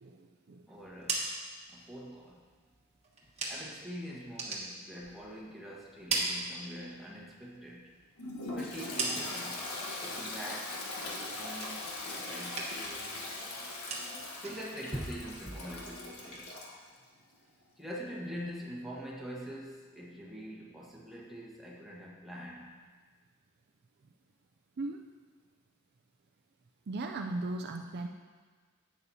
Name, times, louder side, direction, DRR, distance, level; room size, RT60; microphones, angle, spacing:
voice 1, 0.0-0.7 24.8-25.0 26.9-28.1, right 2 dB, 45° right, 4 dB, 0.4 m, -37 dB
voice 2, 0.7-1.3 1.7-2.4 3.5-7.9 8.5-9.7 10.0-10.9 11.2-13.7 14.4-16.5 17.8-22.8, equal, ahead, -4 dB, 1.3 m, -44 dB
sound 1, 0.8-3.9 4.2-5.5 5.8-7.1 7.5-9.6 10.0-10.5 10.8-12.1 12.4-13.0 13.2-16.1, right 3 dB, 30° right, 1.3 m, -39 dB
Toilet flush, 8.2-16.8, left 2 dB, 80° left, 1.4 m, -40 dB
11.0 x 8.5 x 2.8 m, 1.5 s
head